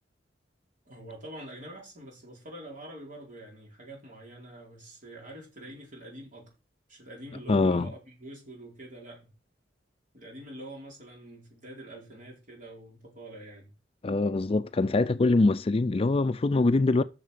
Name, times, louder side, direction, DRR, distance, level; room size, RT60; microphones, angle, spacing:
voice 1, 0.9-6.5 6.9-9.3 10.1-13.7, right 1 dB, 50° right, 4.5 m, -45 dB
voice 2, 7.5-7.9 14.0-17.0, left 3 dB, 35° left, 0.4 m, -23 dB
7.1 x 6.6 x 6.8 m
head